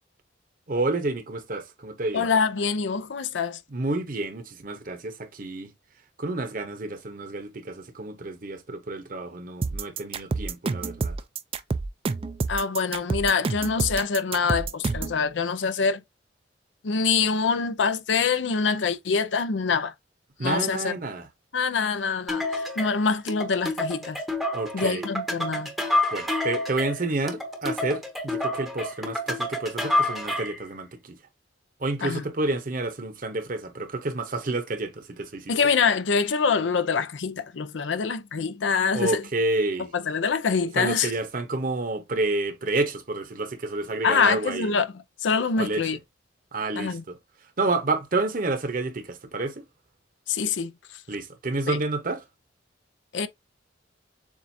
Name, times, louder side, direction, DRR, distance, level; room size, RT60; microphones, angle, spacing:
voice 1, 0.7-2.3 3.7-5.7 6.2-11.1 20.4-21.3 24.5-25.1 26.1-31.2 31.8-35.6 38.9-39.9 40.7-44.7 45.6-45.9 46.5-47.2 47.6-49.6 51.1-52.2, right 2 dB, 45° right, 0.9 m, -29 dB
voice 2, 2.1-3.6 12.5-16.0 16.8-19.9 20.4-20.9 21.5-24.2 24.7-25.7 32.0-32.2 35.5-39.3 39.8-41.1 44.0-46.0 46.8-47.0 50.3-51.0 51.7-51.8 53.1-53.3, left 5 dB, 80° left, 0.6 m, -25 dB
sound 1, 9.6-15.2, right 4 dB, 30° right, 0.3 m, -28 dB
sound 2, 22.3-30.6, left 1 dB, ahead, 0.8 m, -28 dB
7.2 x 2.5 x 2.6 m
head